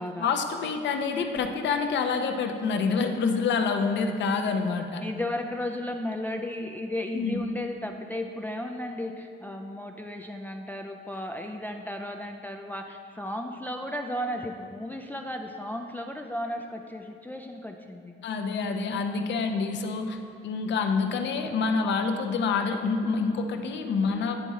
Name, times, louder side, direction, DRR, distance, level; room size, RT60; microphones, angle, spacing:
voice 1, 0.0-5.0 7.1-7.4 18.2-20.2 20.4-24.4, left 4 dB, 65° left, 5 dB, 0.6 m, -27 dB
voice 2, 5.0-18.1, left 1 dB, 10° left, 3 dB, 0.3 m, -34 dB
9.9 x 3.6 x 4.0 m, 2.6 s
cardioid pair, 90°, 20 cm